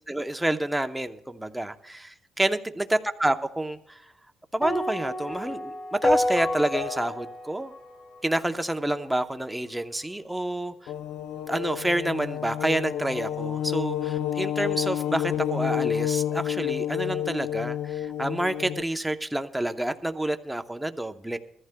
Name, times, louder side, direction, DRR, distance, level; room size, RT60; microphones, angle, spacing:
voice 1, 0.1-4.0 4.5-7.7 8.2-10.7 11.5-21.4, right 1 dB, 5° right, 8 dB, 0.8 m, -28 dB
sound 1, 4.6-8.9, left 1 dB, 45° left, 2.4 m, -29 dB
sound 2, 10.9-18.8, left 11 dB, 80° left, 0.4 m, -29 dB
22.0 x 14.5 x 2.3 m, 0.77 s
cardioid pair, 90°, 0 cm